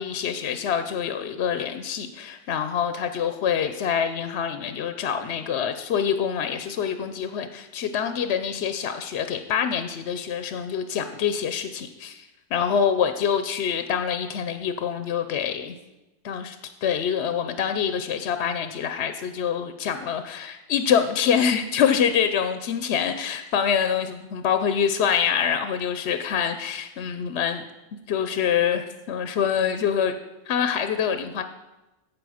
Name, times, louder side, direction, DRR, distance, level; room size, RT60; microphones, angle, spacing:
voice 1, 0.0-15.8 16.2-16.6 16.8-27.7 28.1-30.2 30.5-31.4, left 8 dB, 65° left, 9 dB, 0.8 m, -25 dB
14.0 x 4.7 x 4.9 m, 1.0 s
omnidirectional pair, 1.3 m